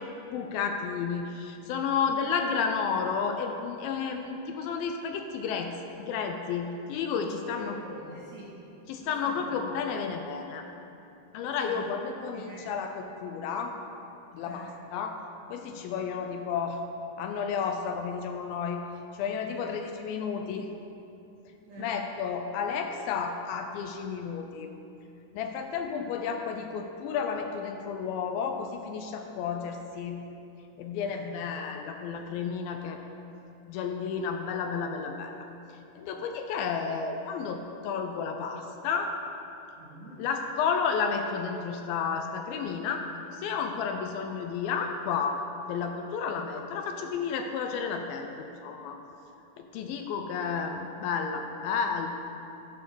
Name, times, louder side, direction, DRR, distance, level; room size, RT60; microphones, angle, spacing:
voice 1, 0.0-7.8 8.9-10.6 11.3-13.7 14.3-15.2 15.5-16.8 17.2-18.8 19.1-20.7 21.8-24.7 25.3-30.2 30.8-33.0 33.7-35.4 36.0-39.1 40.2-45.4 45.7-49.0 49.6-52.1, left 6 dB, 80° left, 5 dB, 2.3 m, -32 dB
voice 2, 7.5-8.6 9.0-9.4 11.6-11.9 12.3-12.9 14.4-14.7 15.9-16.1 19.5-19.9 21.6-22.0 31.0-31.2 39.8-40.2, right 1 dB, 60° right, -6 dB, 2.2 m, -46 dB
11.0 x 4.4 x 6.8 m, 2.8 s
omnidirectional pair, 4.4 m